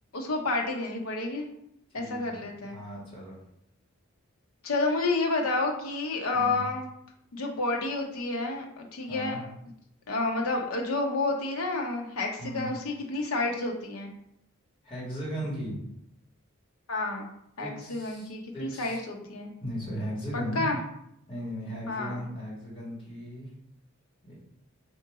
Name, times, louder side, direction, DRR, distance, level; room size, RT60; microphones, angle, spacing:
voice 1, 0.1-1.5 1.9-2.8 4.6-6.9 7.3-9.4 10.1-14.1 16.9-17.3 17.6-19.5 20.5-20.8 21.9-22.2, left 3 dB, 75° left, 1 dB, 0.8 m, -30 dB
voice 2, 1.9-3.4 6.3-6.6 9.1-9.4 12.4-12.7 14.8-15.8 17.6-19.0 19.6-20.7 21.3-23.5 24.2-24.3, equal, 25° left, -6 dB, 1.6 m, -37 dB
3.7 x 2.7 x 4.7 m, 0.76 s
head